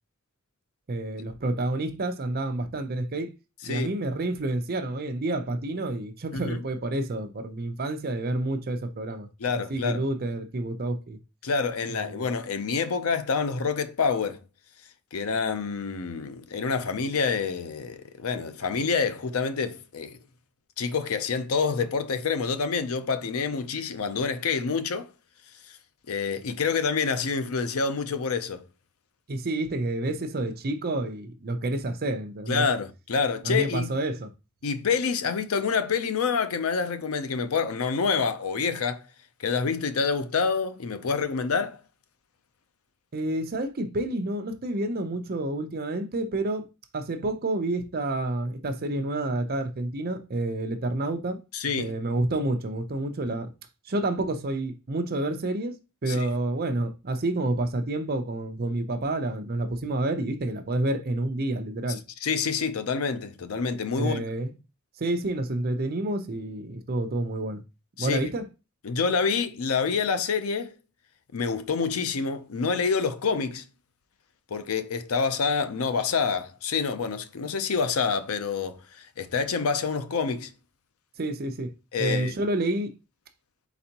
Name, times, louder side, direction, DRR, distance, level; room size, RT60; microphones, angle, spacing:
voice 1, 0.9-3.3 3.6-9.3 9.7-11.2 11.9-12.3 29.3-32.6 33.4-34.3 43.1-46.6 46.9-51.4 51.8-53.5 53.9-55.7 56.0-62.0 64.0-64.5 65.0-67.6 68.0-68.4 81.2-81.7 82.0-82.9, right 2 dB, 45° right, 0.6 m, -29 dB
voice 2, 9.4-10.0 11.4-14.4 15.1-20.2 20.8-25.1 26.1-28.6 32.5-34.0 34.6-39.0 39.4-41.8 51.5-51.9 56.1-56.3 62.2-64.2 68.0-68.3 68.8-70.7 71.3-73.6 74.5-78.8 79.2-80.5 81.9-82.3, left 5 dB, 80° left, 0.5 m, -27 dB
4.3 x 4.1 x 2.8 m
head